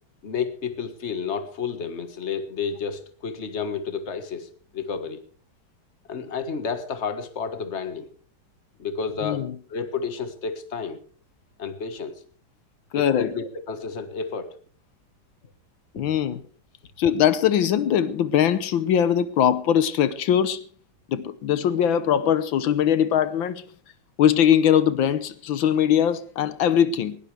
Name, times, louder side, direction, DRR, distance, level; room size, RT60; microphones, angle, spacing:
voice 1, 0.2-5.2 6.1-8.1 8.8-11.0 11.6-12.1 12.9-14.6 15.9-16.0, left 5 dB, 35° left, 1.7 m, -31 dB
voice 2, 12.9-13.3 16.0-16.4 17.0-20.6 21.1-23.6 24.2-27.2, left 9 dB, 85° left, 1.7 m, -21 dB
19.5 x 18.0 x 3.4 m
omnidirectional pair, 2.1 m